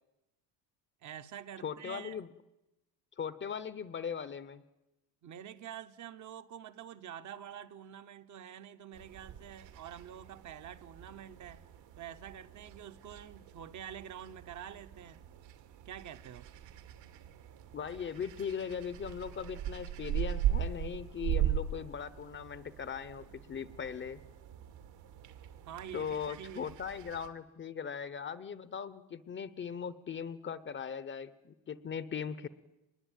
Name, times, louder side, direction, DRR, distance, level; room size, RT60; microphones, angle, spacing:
voice 1, 1.0-2.2 5.2-11.6 12.0-15.2 15.8-16.5 25.6-26.7, right 9 dB, 40° right, 1.1 m, -47 dB
voice 2, 1.6-2.3 3.2-4.6 17.7-24.2 25.9-32.5, left 7 dB, 25° left, 0.8 m, -39 dB
sound 1, 8.9-27.3, right 11 dB, 75° right, 2.7 m, -40 dB
25.0 x 21.0 x 9.2 m
cardioid pair, 145°, 44 cm